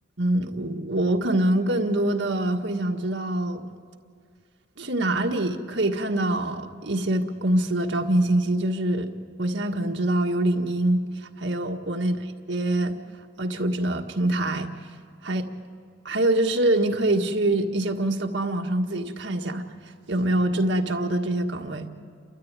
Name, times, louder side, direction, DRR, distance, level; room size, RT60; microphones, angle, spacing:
voice 1, 0.2-3.6 4.8-9.1 9.4-11.1 11.4-13.0 13.4-14.7 15.2-15.5 16.0-19.6 20.1-21.9, right 1 dB, 70° right, 3 dB, 1.6 m, -24 dB
30.0 x 13.5 x 9.0 m, 2.2 s
head